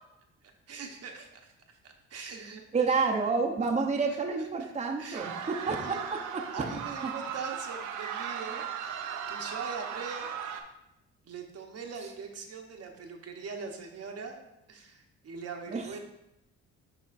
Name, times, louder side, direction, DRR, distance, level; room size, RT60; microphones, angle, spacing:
voice 1, 0.4-3.0 4.6-4.7 5.0-5.3 5.7-6.0 6.5-8.6 9.3-10.3 11.2-14.4 14.7-16.0, right 5 dB, 55° right, 3 dB, 1.0 m, -42 dB
voice 2, 2.7-6.6 15.7-16.0, right 4 dB, 25° right, 1 dB, 0.8 m, -29 dB
sound 1, 5.1-10.6, right 7 dB, 80° right, 0.7 m, -37 dB
11.0 x 3.6 x 2.5 m, 0.86 s
cardioid pair, 90°, 30 cm